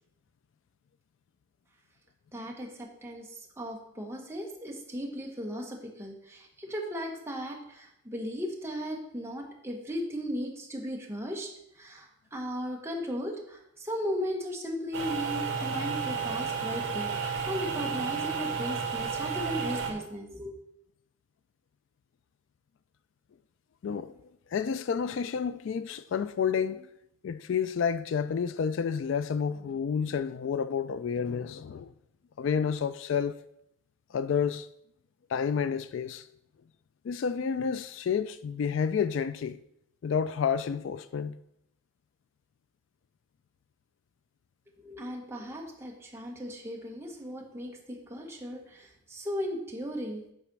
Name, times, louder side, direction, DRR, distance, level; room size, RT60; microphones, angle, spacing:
voice 1, 2.3-11.5 11.7-20.6 44.8-50.2, equal, 10° right, 1.2 m, -36 dB
sound 1, 14.9-19.9, right 5 dB, 65° right, 1.7 m, -32 dB
voice 2, 23.8-24.1 24.5-26.9 27.2-31.9 32.4-33.4 34.1-34.7 35.3-36.3 37.0-39.6 40.0-41.4, left 6 dB, 60° left, 0.3 m, -30 dB
8.9 x 4.1 x 6.0 m
head